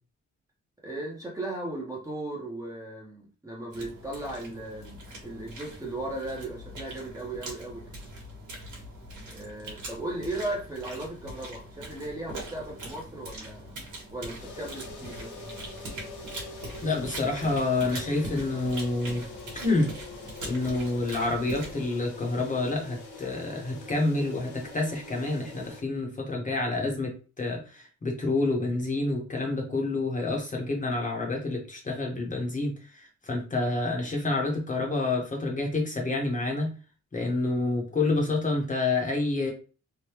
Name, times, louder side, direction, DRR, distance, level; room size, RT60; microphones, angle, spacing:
voice 1, 0.8-7.9 9.3-13.7 14.1-15.5, right 2 dB, 10° right, -3 dB, 0.7 m, -36 dB
sound 1, 3.7-21.9, right 1 dB, 75° right, 1.2 m, -42 dB
sound 2, 14.4-25.8, left 3 dB, 75° left, 0.9 m, -44 dB
voice 2, 16.8-19.2 19.6-19.9 20.4-36.7 37.1-39.5, left 2 dB, 25° left, 0 dB, 0.8 m, -28 dB
3.3 x 2.2 x 2.8 m, 0.36 s
wide cardioid pair, 150°, 30 cm